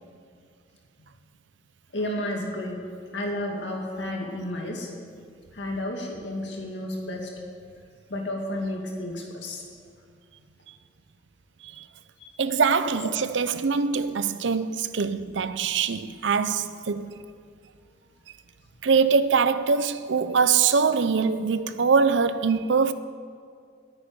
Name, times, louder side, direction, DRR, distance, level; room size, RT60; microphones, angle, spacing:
voice 1, 1.9-2.8 3.1-4.9 5.5-7.3 8.1-9.6 12.2-12.3, left 1 dB, 70° left, 2.3 m, -31 dB
voice 2, 12.4-17.2 18.8-22.9, right 5 dB, 80° right, 0.6 m, -23 dB
10.5 x 8.4 x 10.0 m
head